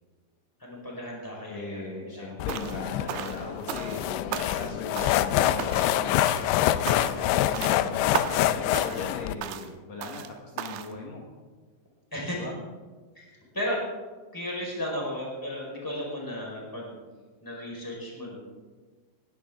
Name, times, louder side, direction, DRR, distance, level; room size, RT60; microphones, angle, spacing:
voice 1, 0.6-2.5 6.6-8.0 12.1-12.5 13.1-13.8 14.3-17.0 17.4-18.3, left 1 dB, 5° left, -3 dB, 4.2 m, -35 dB
voice 2, 1.5-6.0 7.2-8.1 8.3-11.2 12.3-12.6, left 3 dB, 65° left, -1 dB, 1.7 m, -39 dB
sound 1, 2.4-9.3, left 12 dB, 80° left, 2.6 m, -26 dB
sound 2, 2.5-2.8 3.1-4.0 4.3-4.7 5.0-5.3 5.6-6.0 6.2-6.5 6.9-7.3 7.5-7.8 8.1-8.5 8.7-9.1 9.4-9.7 10.0-10.3 10.6-10.9, right 10 dB, 80° right, 2.7 m, -35 dB
19.0 x 16.0 x 3.7 m, 1.4 s
omnidirectional pair, 5.5 m